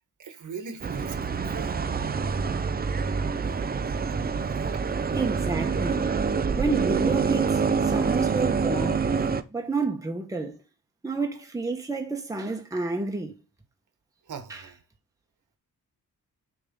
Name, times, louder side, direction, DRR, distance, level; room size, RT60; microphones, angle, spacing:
voice 1, 0.2-1.8 4.4-4.9 14.2-14.8, right 5 dB, 60° right, 1.4 m, -41 dB
sound 1, 0.8-9.4, right 5 dB, 25° right, 0.5 m, -26 dB
voice 2, 5.1-6.0 6.6-9.0 9.5-10.6 11.0-13.4 14.5-14.6, right 3 dB, 10° right, 1.0 m, -30 dB
6.8 x 3.6 x 5.2 m
wide cardioid pair, 140°, 35 cm